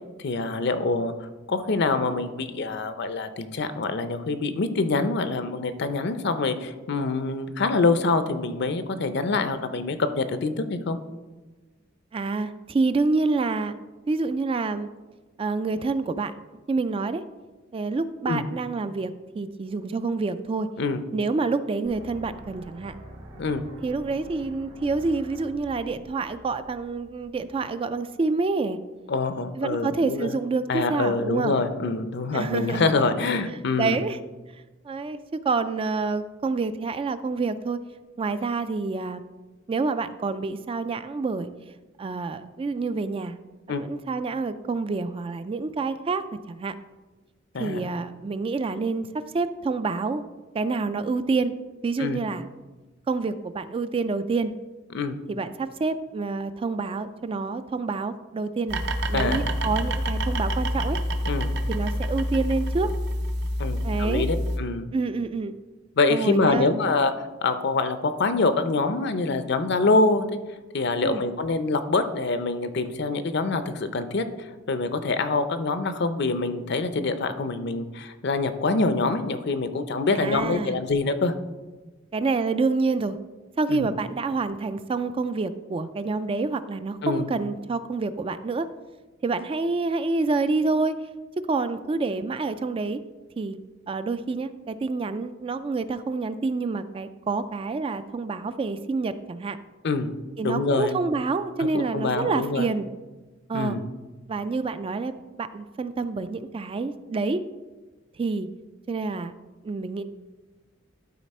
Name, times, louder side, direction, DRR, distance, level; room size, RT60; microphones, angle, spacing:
voice 1, 0.2-1.1 1.5-11.0 18.3-18.4 20.8-21.0 23.4-23.6 29.1-30.3 30.7-34.0 43.7-43.8 47.5-47.9 52.0-52.2 54.9-55.2 59.1-59.5 61.3-61.5 63.6-64.9 66.0-67.1 67.4-70.2 70.7-74.2 74.7-81.3 83.7-83.9 87.0-87.3 99.8-100.1 100.4-100.9 101.7-102.7 103.5-103.9, left 3 dB, 60° left, 10 dB, 0.6 m, -25 dB
voice 2, 12.1-13.7 14.1-14.9 15.4-16.3 16.7-17.2 17.7-20.7 21.1-23.0 23.8-28.8 29.6-31.6 32.3-33.1 33.8-34.2 34.9-37.8 38.2-39.3 39.7-41.5 42.0-43.4 43.7-46.2 46.5-46.7 47.6-49.1 49.3-50.2 50.5-51.5 51.8-52.4 53.1-54.5 55.3-58.8 59.1-61.0 61.7-62.9 63.8-64.3 64.9-65.5 66.1-66.8 71.0-71.2 80.1-80.8 82.1-83.2 83.6-88.7 89.2-91.0 91.5-93.0 93.4-93.6 93.9-99.6 100.4-102.9 103.5-103.8 104.3-107.4 108.2-108.5 108.9-109.3 109.6-110.0, right 3 dB, 30° right, 12 dB, 0.3 m, -27 dB
sound 1, 21.8-27.8, right 1 dB, 80° right, 2.0 m, -46 dB
sound 2, 58.7-64.6, equal, 60° right, 0.7 m, -27 dB
12.0 x 4.1 x 4.2 m, 1.2 s
head